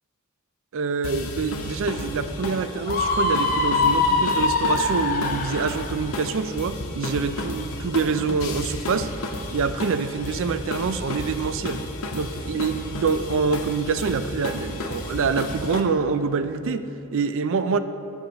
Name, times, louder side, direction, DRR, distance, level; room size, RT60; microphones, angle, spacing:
voice 1, 0.7-9.1 9.5-11.8 12.1-17.8, right 5 dB, 60° right, 11 dB, 0.4 m, -26 dB
sound 1, 1.0-15.8, left 1 dB, 70° left, 0.9 m, -33 dB
Screaming, 2.9-5.8, left 3 dB, 40° left, 0.7 m, -22 dB
16.0 x 7.1 x 2.9 m, 3.0 s
head